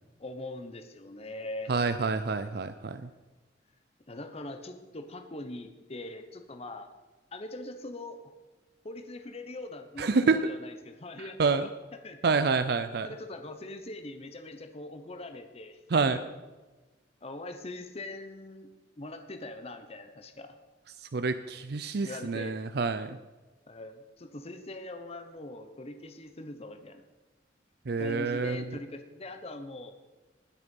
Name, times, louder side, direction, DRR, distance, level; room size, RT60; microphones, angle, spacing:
voice 1, 0.2-1.7 4.1-6.9 7.3-8.2 8.8-12.2 13.0-16.3 17.2-18.7 19.0-20.6 22.0-22.6 23.7-27.0 28.0-29.9, left 2 dB, 35° left, 7 dB, 0.9 m, -42 dB
voice 2, 1.7-3.0 10.0-10.4 11.4-11.7 12.2-13.1 15.9-16.2 21.1-23.2 27.9-28.6, right 4 dB, 65° right, 10 dB, 0.5 m, -27 dB
19.5 x 6.8 x 5.4 m, 1.2 s
head